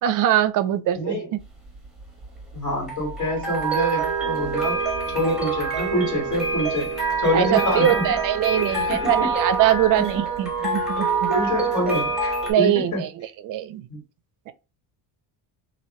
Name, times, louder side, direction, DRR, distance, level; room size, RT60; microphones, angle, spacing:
voice 1, 0.0-1.4 7.3-11.3 12.5-13.9 14.5-14.6, right 11 dB, 45° right, 0.5 m, -22 dB
voice 2, 1.0-1.3 2.5-4.8 5.1-6.9 7.2-8.1 8.9-9.3 11.3-13.0 13.9-14.0, left 1 dB, 40° left, 2.0 m, -26 dB
sound 1, 1.4-12.5, right 4 dB, ahead, 1.3 m, -26 dB
2.9 x 2.7 x 4.2 m
cardioid pair, 140°, 45 cm